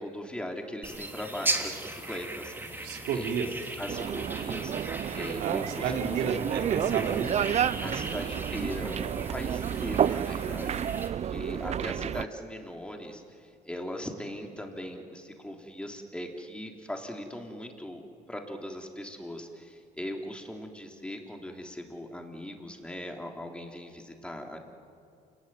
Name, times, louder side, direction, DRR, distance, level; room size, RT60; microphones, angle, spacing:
voice 1, 0.0-3.3 3.8-4.9 5.1-6.2 7.8-10.8 11.2-18.0 18.3-24.6, left 1 dB, 5° left, 2 dB, 3.5 m, -39 dB
sound 1, 0.8-11.1, right 2 dB, 10° right, 3.2 m, -38 dB
voice 2, 2.8-3.5 5.3-7.4 11.5-11.6 11.9-12.0, right 6 dB, 85° right, 3 dB, 3.2 m, -32 dB
sound 2, 3.9-12.2, right 9 dB, 40° right, 0.6 m, -30 dB
28.0 x 19.5 x 9.4 m, 2.4 s
cardioid pair, 110°, 17 cm